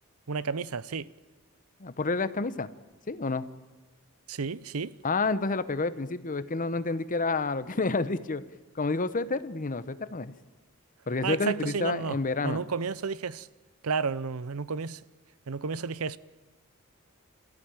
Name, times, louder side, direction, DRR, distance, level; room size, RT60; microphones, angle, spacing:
voice 1, 0.3-1.1 4.3-4.9 11.2-12.2 12.4-13.5 13.8-15.0 15.5-16.2, right 5 dB, 80° right, 0.7 m, -32 dB
voice 2, 1.8-2.7 3.1-3.4 5.0-8.4 8.7-10.3 11.1-12.6, left 3 dB, 40° left, 0.9 m, -29 dB
27.0 x 14.5 x 9.0 m
head